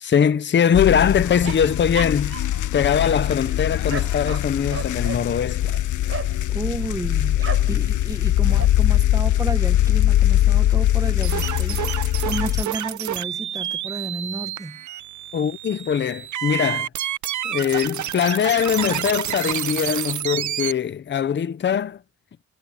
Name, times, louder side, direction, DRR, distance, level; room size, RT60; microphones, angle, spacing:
voice 1, 0.0-2.4 2.7-5.7 15.3-16.9 17.4-22.0, left 8 dB, 40° left, 0.7 m, -21 dB
sound 1, 0.7-12.6, left 13 dB, 80° left, 0.6 m, -21 dB
sound 2, 1.4-2.7 3.0-6.4 7.4-7.8 8.1-8.7, right 6 dB, 50° right, 4.1 m, -35 dB
voice 2, 6.5-14.8, right 2 dB, 10° right, 0.9 m, -32 dB
sound 3, 11.2-20.7, right 12 dB, 75° right, 0.7 m, -29 dB
wide cardioid pair, 165°, 30 cm